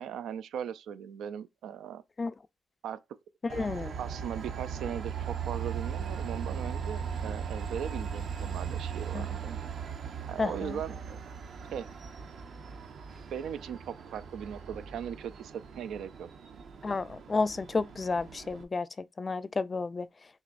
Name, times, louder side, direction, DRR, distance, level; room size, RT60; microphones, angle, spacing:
voice 1, 0.0-2.0 2.8-3.0 4.0-9.6 10.3-11.2 11.7-11.9 13.3-16.3, right 8 dB, 85° right, 0.4 m, -39 dB
voice 2, 3.4-4.0 9.1-9.4 10.4-10.8 16.8-20.1, left 3 dB, 30° left, 0.3 m, -32 dB
Train, 3.5-18.6, right 7 dB, 65° right, 0.9 m, -38 dB
6.4 x 3.0 x 2.5 m
cardioid pair, 100°, 0 cm